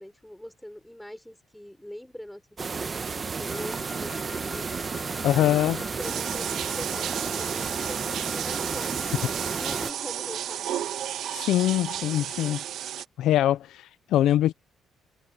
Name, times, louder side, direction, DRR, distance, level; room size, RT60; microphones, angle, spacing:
voice 1, 0.0-2.4 2.7-2.9 3.1-4.7 5.4-10.9, left 1 dB, 5° left, 5.9 m, -43 dB
sound 1, 2.6-9.9, right 5 dB, 30° right, 0.9 m, -32 dB
Wind instrument woodwind instrument, 3.5-9.9, left 5 dB, 35° left, 4.2 m, -46 dB
voice 2, 5.2-5.8 11.3-12.6 13.2-14.5, left 12 dB, 80° left, 0.4 m, -23 dB
sound 2, 6.0-13.0, right 11 dB, 70° right, 1.5 m, -33 dB
cardioid pair, 155°, 0 cm